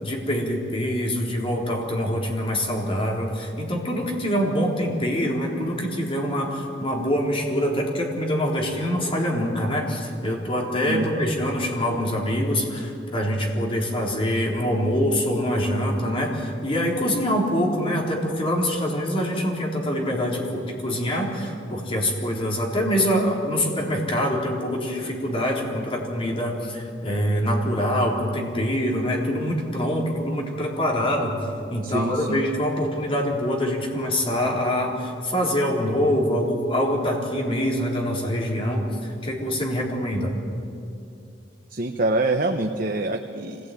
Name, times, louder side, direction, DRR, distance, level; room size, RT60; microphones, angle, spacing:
voice 1, 0.0-31.4 31.7-40.3, equal, 30° left, -1 dB, 4.0 m, -25 dB
voice 2, 31.8-32.4 41.7-43.6, right 2 dB, 50° right, 3 dB, 1.1 m, -25 dB
25.5 x 17.5 x 9.3 m, 2.6 s
head